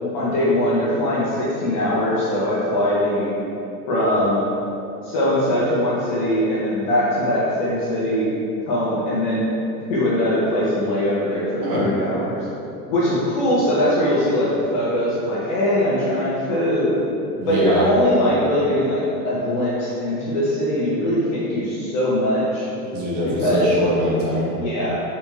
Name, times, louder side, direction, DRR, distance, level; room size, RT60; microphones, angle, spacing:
voice 1, 0.0-3.3 3.9-4.4 5.0-8.3 8.7-9.5 9.9-12.4 12.9-17.0 17.5-22.7 23.2-23.7 24.6-25.0, left 1 dB, 35° left, -7 dB, 0.4 m, -21 dB
voice 2, 17.4-17.9 22.9-24.5, right 1 dB, 45° right, -6 dB, 1.0 m, -23 dB
3.4 x 2.6 x 2.9 m, 2.8 s
supercardioid pair, 130°, 47 cm